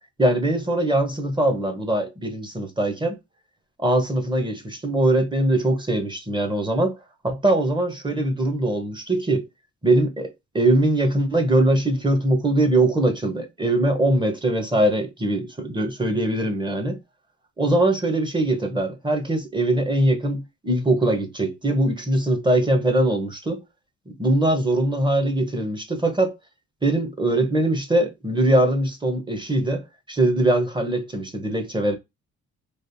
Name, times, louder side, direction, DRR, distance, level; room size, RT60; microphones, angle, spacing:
voice 1, 0.2-3.2 3.8-6.9 7.2-9.4 9.8-17.0 17.6-23.6 24.1-26.3 26.8-32.0, right 1 dB, 15° right, 1.0 m, -22 dB
3.2 x 2.5 x 2.6 m
cardioid pair, 90°, 30 cm